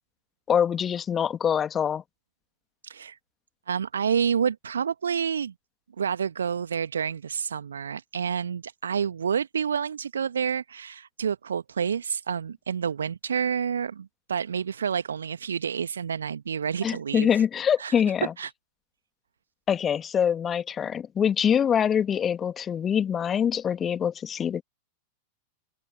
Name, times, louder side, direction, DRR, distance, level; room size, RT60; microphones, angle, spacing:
voice 1, 0.5-2.0 16.8-18.3 19.7-24.6, left 8 dB, 25° left, 2.6 m, -24 dB
voice 2, 2.8-3.2 3.7-5.5 6.0-17.4 17.8-17.9 18.4-18.5, right 7 dB, 70° right, 1.4 m, -29 dB
open air
figure-of-eight pair, 90°, 0 cm